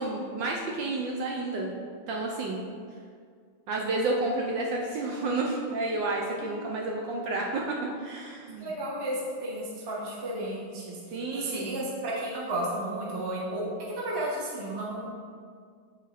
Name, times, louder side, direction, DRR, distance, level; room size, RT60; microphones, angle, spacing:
voice 1, 0.0-1.8 2.1-2.6 3.7-8.7 11.1-11.7, right 2 dB, 70° right, -1 dB, 1.2 m, -30 dB
voice 2, 8.6-15.1, right 1 dB, 20° right, -4 dB, 0.7 m, -33 dB
8.2 x 4.0 x 4.0 m, 2.1 s
omnidirectional pair, 2.4 m